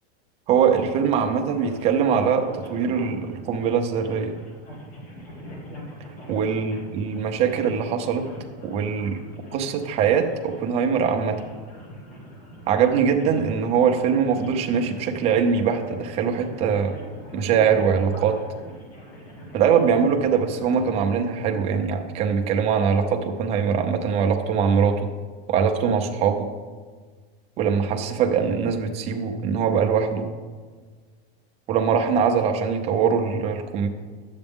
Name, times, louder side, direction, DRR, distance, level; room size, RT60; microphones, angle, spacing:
voice 1, 0.5-4.3 6.3-8.3 8.6-9.2 9.5-11.4 12.7-17.0 17.3-18.4 19.5-25.1 25.5-26.5 27.6-30.3 31.7-33.9, right 6 dB, 20° right, 4 dB, 0.5 m, -22 dB
sound 1, 1.5-20.9, equal, 70° left, 2.7 m, -42 dB
11.0 x 8.0 x 3.6 m, 1.5 s
supercardioid pair, 175°, 32 cm